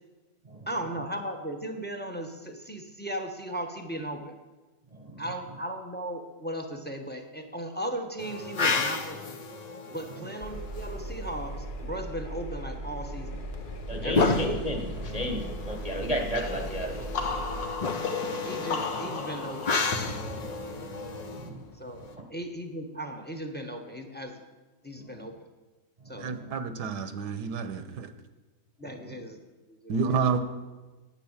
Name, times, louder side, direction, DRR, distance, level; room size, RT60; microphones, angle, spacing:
voice 1, 0.7-4.3 5.2-9.4 9.9-13.4 14.0-14.4 18.4-19.8 21.7-24.4 24.8-25.4 26.0-26.3 28.8-29.4 29.7-29.9, right 1 dB, 10° left, 5 dB, 0.8 m, -37 dB
voice 2, 4.9-5.2 13.9-17.1 20.7-20.8 21.3-21.6 22.1-22.2 25.0-25.3 26.0-26.5, equal, 25° right, 2 dB, 1.0 m, -33 dB
sound 1, 8.2-11.3 13.2-22.1, left 4 dB, 65° left, 0.4 m, -32 dB
Engine, 10.4-17.7, right 1 dB, 35° left, 0.9 m, -38 dB
sound 2, 16.3-21.9, left 4 dB, 85° left, 2.1 m, -36 dB
voice 3, 26.2-28.1 29.9-30.4, right 5 dB, 75° right, 9 dB, 1.5 m, -29 dB
10.5 x 9.0 x 7.2 m, 1.2 s
omnidirectional pair, 1.9 m